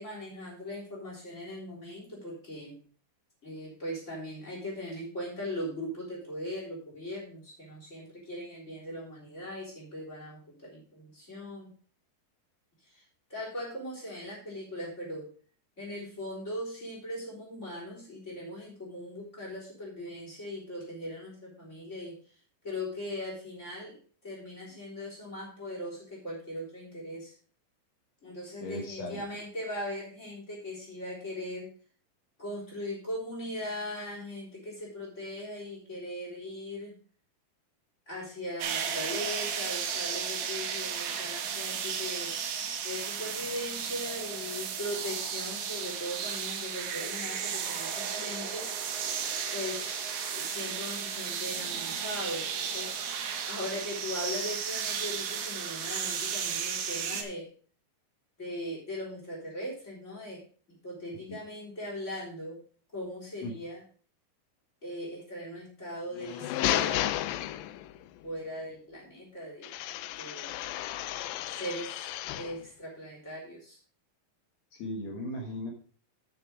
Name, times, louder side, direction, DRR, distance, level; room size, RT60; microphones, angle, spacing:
voice 1, 0.0-2.8 3.4-11.7 12.8-15.3 15.8-22.4 22.6-24.0 24.2-27.4 28.2-31.7 32.4-36.9 38.1-42.4 42.8-49.0 49.5-52.9 53.5-57.5 58.4-60.4 60.7-62.6 62.9-63.8 64.8-67.2 68.2-69.7 70.2-70.6 71.5-73.8, left 1 dB, 15° left, -2 dB, 3.4 m, -39 dB
voice 2, 28.6-29.2 63.4-63.5 74.7-75.7, left 1 dB, 65° left, 1 dB, 1.7 m, -37 dB
sound 1, 38.6-57.2, right 7 dB, 65° right, 2.6 m, -34 dB
sound 2, 66.1-68.1 69.6-72.6, left 14 dB, 85° left, 2.7 m, -33 dB
9.2 x 6.6 x 4.9 m, 0.42 s
omnidirectional pair, 5.1 m